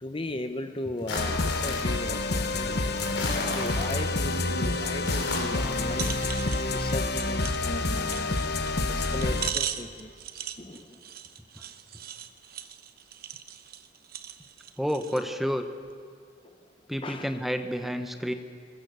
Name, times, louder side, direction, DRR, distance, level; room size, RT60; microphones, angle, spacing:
voice 1, 0.0-2.9 3.5-6.2 6.7-8.4 8.9-10.1 10.6-11.0 17.0-17.4, left 2 dB, 25° left, 8 dB, 0.8 m, -37 dB
sound 1, 1.0-2.0 3.0-4.2 4.9-5.8, left 2 dB, 75° left, 5.5 m, -34 dB
sound 2, 1.1-9.5, left 2 dB, 55° left, 1.1 m, -28 dB
sound 3, 4.7-5.2 5.5-5.6 5.9-15.3 15.8-15.9, right 10 dB, 50° right, 0.9 m, -39 dB
voice 2, 14.8-15.6 16.9-18.3, equal, ahead, 7 dB, 1.0 m, -29 dB
23.0 x 21.0 x 6.8 m, 2.2 s
head